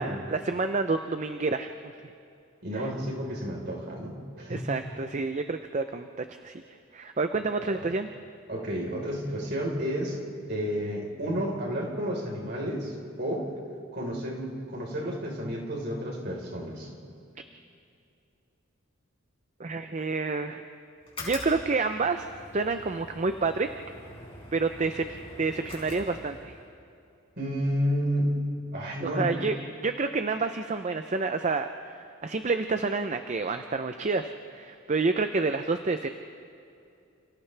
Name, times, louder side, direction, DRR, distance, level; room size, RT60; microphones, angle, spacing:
voice 1, 0.0-1.7 2.7-2.9 4.5-6.6 6.9-8.1 19.6-20.6 21.2-23.7 24.5-25.0 25.4-26.5 29.0-29.6 29.8-36.1, right 3 dB, 35° right, 7 dB, 0.5 m, -29 dB
voice 2, 2.6-4.7 7.7-7.8 8.5-10.2 10.5-13.5 13.9-16.9 27.4-28.4 28.7-29.4, equal, 55° right, -2 dB, 4.3 m, -31 dB
Oven on off, 21.0-26.7, left 2 dB, 25° left, 4.6 m, -44 dB
29.5 x 29.0 x 3.4 m, 2.5 s
head